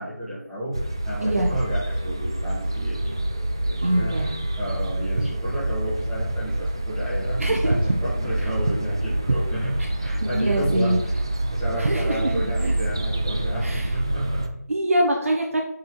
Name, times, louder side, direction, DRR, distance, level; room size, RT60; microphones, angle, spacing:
voice 1, 0.0-11.1 11.5-14.6, right 1 dB, ahead, -14 dB, 2.1 m, -31 dB
sound 1, 0.7-14.5, right 1 dB, 15° right, 0.3 m, -27 dB
voice 2, 1.2-1.5 3.8-4.3 5.2-5.3 7.4-7.7 10.2-11.0 11.8-12.7 13.6-13.9 14.7-15.6, right 1 dB, 55° right, 0 dB, 1.4 m, -24 dB
8.1 x 4.7 x 4.5 m, 0.73 s
figure-of-eight pair, 170°, 9 cm